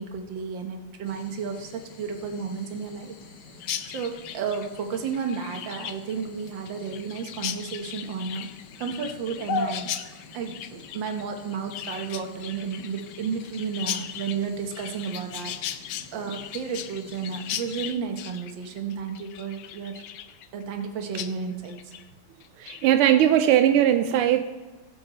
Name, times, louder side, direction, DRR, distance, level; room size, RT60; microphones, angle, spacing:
voice 1, 0.0-3.2 3.9-8.5 8.8-9.9 10.3-15.5 16.1-20.0 20.5-21.9, right 6 dB, 65° right, 5 dB, 1.8 m, -32 dB
sound 1, 1.0-17.9, left 5 dB, 60° left, 1.4 m, -42 dB
Chirp tweet, 3.6-20.9 21.1-21.3 21.6-22.0 22.4-22.9, left 11 dB, 75° left, 1.0 m, -38 dB
voice 2, 22.6-24.4, right 11 dB, 85° right, 9 dB, 1.5 m, -19 dB
20.0 x 7.9 x 3.0 m, 1.2 s
omnidirectional pair, 2.4 m